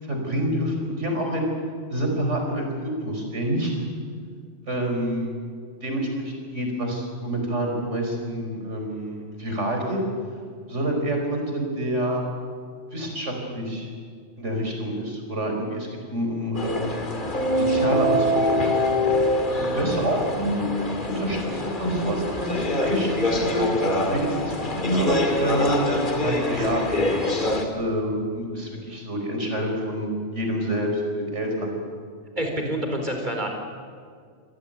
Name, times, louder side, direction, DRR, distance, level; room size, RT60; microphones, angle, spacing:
voice 1, 0.0-1.5 1.9-3.8 4.7-5.3 5.8-10.0 10.7-12.2 12.9-13.9 14.4-18.3 18.6-18.7 19.6-20.7 21.1-23.7 24.1-27.0 27.6-31.7, right 1 dB, 80° right, 2 dB, 5.3 m, -27 dB
sound 1, 16.6-27.6, left 1 dB, 45° left, 2.5 m, -25 dB
voice 2, 32.4-33.5, right 1 dB, 40° right, 2 dB, 4.4 m, -27 dB
26.5 x 17.0 x 9.1 m, 2.1 s
omnidirectional pair, 1.2 m